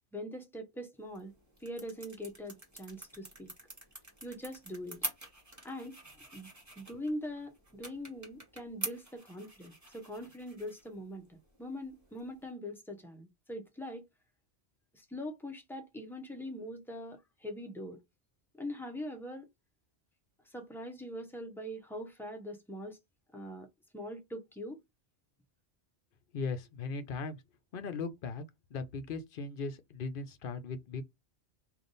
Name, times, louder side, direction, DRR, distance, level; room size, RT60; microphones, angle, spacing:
voice 1, 0.1-1.3 1.6-3.5 4.2-5.0 5.6-6.0 6.3-6.5 6.8-14.1 14.9-18.0 18.6-19.5 20.5-23.0 23.3-23.7 23.9-24.8, equal, ahead, 0.8 m, -42 dB
sound 1, 1.0-12.5, right 1 dB, 15° right, 1.3 m, -47 dB
voice 2, 26.3-27.4 27.7-31.0, left 4 dB, 60° left, 0.8 m, -38 dB
3.4 x 2.5 x 3.9 m
omnidirectional pair, 1.1 m